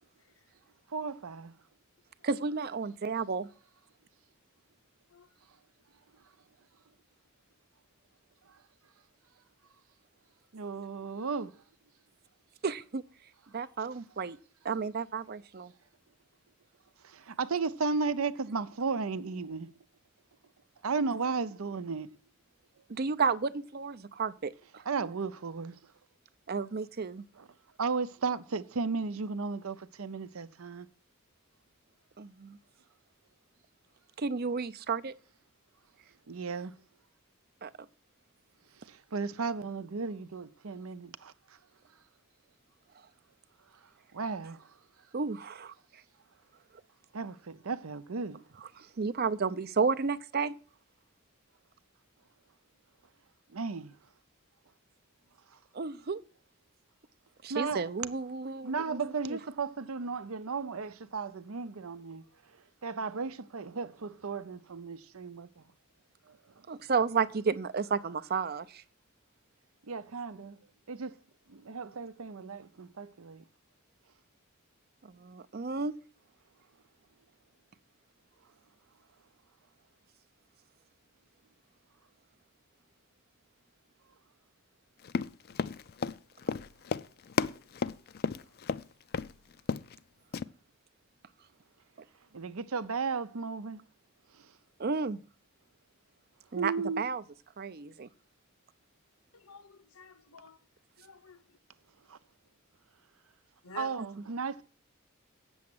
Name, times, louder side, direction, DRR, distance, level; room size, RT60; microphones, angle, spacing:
voice 1, 0.9-1.5 10.5-11.5 17.0-19.7 20.8-22.1 24.8-25.8 27.4-27.5 27.8-30.9 36.3-36.7 38.8-41.3 44.1-44.7 47.1-48.4 53.5-54.0 57.5-57.8 58.6-62.2 62.8-65.6 66.3-66.4 69.9-70.6 70.9-71.2 71.5-73.4 92.3-93.8 96.6-97.0 102.1-102.2 103.7-104.6, right 4 dB, 80° right, 0.7 m, -35 dB
voice 2, 2.2-3.5 12.6-13.0 13.5-14.4 14.6-15.7 22.9-24.8 26.5-27.2 32.2-32.6 34.2-35.1 37.6-37.7 45.1-45.7 48.8-50.6 55.7-56.2 57.4-59.4 66.7-68.8 75.0-76.0 94.8-95.2 96.5-97.2 97.6-98.1, right 5 dB, 45° right, 0.5 m, -32 dB
Run, 85.0-88.8 89.1-89.3 89.6-90.0 90.3-90.4, left 5 dB, 45° left, 0.4 m, -33 dB
voice 3, 99.3-100.4 101.1-101.6 103.6-104.0, left 5 dB, 80° left, 1.0 m, -49 dB
8.5 x 7.1 x 7.8 m
head